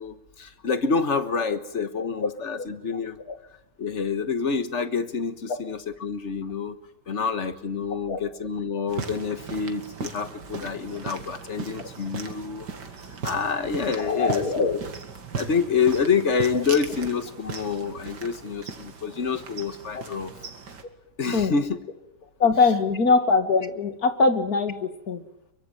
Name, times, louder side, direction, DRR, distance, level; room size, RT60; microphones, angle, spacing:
voice 1, 0.0-3.2 3.8-6.8 7.1-12.7 13.2-14.7 15.3-20.3 21.2-21.8, left 5 dB, 45° left, 11 dB, 1.6 m, -27 dB
sound 1, 8.9-20.8, right 5 dB, 80° right, 2.6 m, -38 dB
voice 2, 14.0-14.7 16.5-16.6 20.0-20.1 21.3-21.5 22.4-25.2, left 4 dB, 60° left, 8 dB, 2.5 m, -22 dB
23.5 x 23.0 x 9.0 m, 0.83 s
omnidirectional pair, 1.8 m